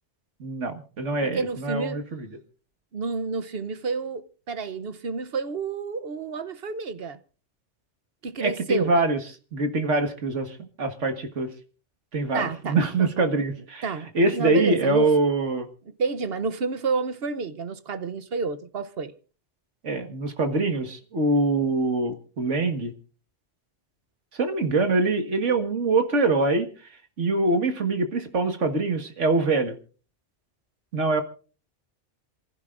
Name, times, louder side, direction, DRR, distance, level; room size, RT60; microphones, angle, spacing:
voice 1, 0.4-2.3 8.4-9.2 9.5-11.5 12.1-13.9 14.1-15.7 19.8-22.9 24.4-26.7 27.2-29.8 30.9-31.2, right 3 dB, 85° right, 2.0 m, -24 dB
voice 2, 1.2-2.0 2.9-7.2 8.2-8.9 12.3-13.1 13.4-13.5 13.8-15.1 16.0-19.1, right 4 dB, 60° right, 1.1 m, -30 dB
27.0 x 15.5 x 2.5 m
omnidirectional pair, 1.2 m